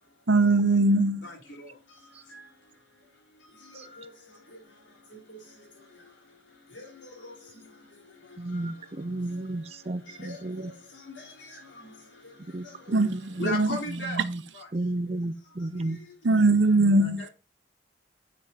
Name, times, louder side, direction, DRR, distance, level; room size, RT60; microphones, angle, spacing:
voice 1, 0.3-1.2 12.9-13.1 13.4-13.7 16.2-17.2, right 2 dB, 85° right, 0.8 m, -20 dB
voice 2, 1.2-1.7 2.0-2.4 3.6-4.6 5.1-5.4 6.7-7.7 8.3-9.7 10.1-12.9 13.4-14.2 14.5-14.7 15.8-16.0 17.0-17.3, left 2 dB, 85° left, 3.5 m, -41 dB
voice 3, 8.4-10.7 12.5-13.5 13.9-14.4 14.7-16.0, right 2 dB, 35° right, 0.5 m, -33 dB
9.4 x 5.0 x 4.2 m
head